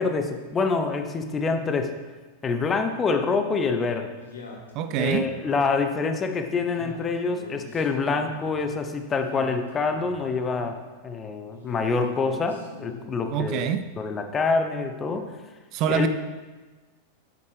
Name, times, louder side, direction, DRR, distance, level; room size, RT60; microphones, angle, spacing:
voice 1, 0.0-1.9 2.4-4.1 5.0-10.8 11.0-13.6 14.0-15.3 15.9-16.1, left 4 dB, 20° left, 0.7 m, -26 dB
Male speech man speaking, 4.2-6.0 6.6-8.5 9.1-10.8 11.5-13.5, left 3 dB, 70° left, 1.2 m, -43 dB
voice 2, 4.7-5.3 13.3-13.9 15.7-16.1, right 9 dB, 40° right, 0.3 m, -25 dB
7.9 x 6.9 x 3.3 m
figure-of-eight pair, 90°, 0 cm